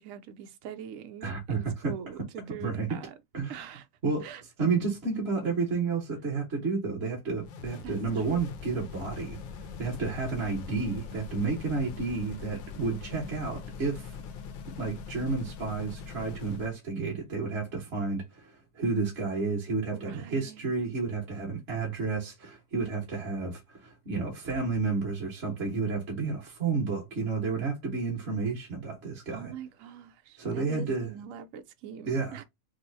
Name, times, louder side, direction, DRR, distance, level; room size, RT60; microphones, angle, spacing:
voice 1, 0.0-3.1 3.5-3.8 4.2-4.4 7.8-8.0 8.3-8.5 19.9-20.7 29.3-32.4, right 8 dB, 75° right, 0.7 m, -43 dB
voice 2, 1.2-1.9 2.6-2.9 3.3-3.7 4.0-4.3 4.6-14.2 14.6-29.5 30.4-31.1 32.0-32.4, right 4 dB, 40° right, 1.4 m, -31 dB
sound 1, 7.4-16.8, left 5 dB, 85° left, 1.4 m, -42 dB
5.4 x 2.0 x 2.7 m
omnidirectional pair, 2.0 m